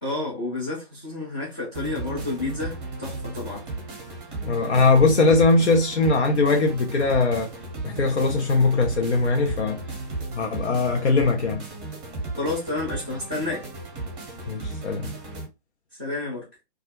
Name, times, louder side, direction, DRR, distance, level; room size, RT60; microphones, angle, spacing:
voice 1, 0.0-3.6 12.4-13.7 16.0-16.5, left 2 dB, 10° left, 0.3 m, -30 dB
sound 1, 1.7-15.5, right 2 dB, 15° right, 0.7 m, -35 dB
voice 2, 4.5-7.5 7.8-9.8 10.3-11.6 14.5-15.1, left 3 dB, 80° left, 0.6 m, -20 dB
2.3 x 2.0 x 2.7 m
figure-of-eight pair, 120°, 33 cm